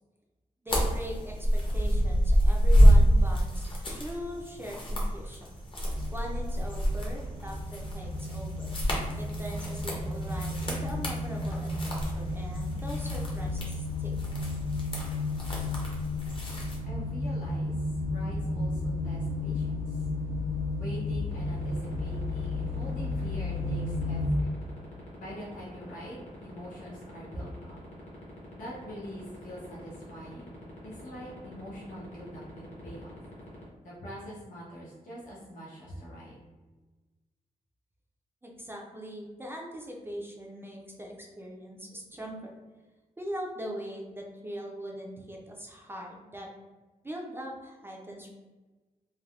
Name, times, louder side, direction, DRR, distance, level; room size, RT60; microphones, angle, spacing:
voice 1, 0.6-5.6 6.1-8.8 9.2-14.1 38.4-42.6 43.2-46.5 47.0-48.3, equal, 15° right, -1 dB, 0.4 m, -41 dB
sound 1, 0.7-16.8, equal, 40° left, 0.7 m, -27 dB
sound 2, 5.9-24.3, left 2 dB, 90° right, 0.5 m, -33 dB
voice 2, 16.8-17.7 18.1-20.0 20.8-24.5 25.2-27.8 28.5-30.6 30.8-33.1 33.8-36.4, equal, 75° left, -6 dB, 0.7 m, -44 dB
sound 3, 21.3-33.6, left 3 dB, 60° left, 1.0 m, -46 dB
3.3 x 2.1 x 2.3 m, 1.2 s
wide cardioid pair, 135°, 14 cm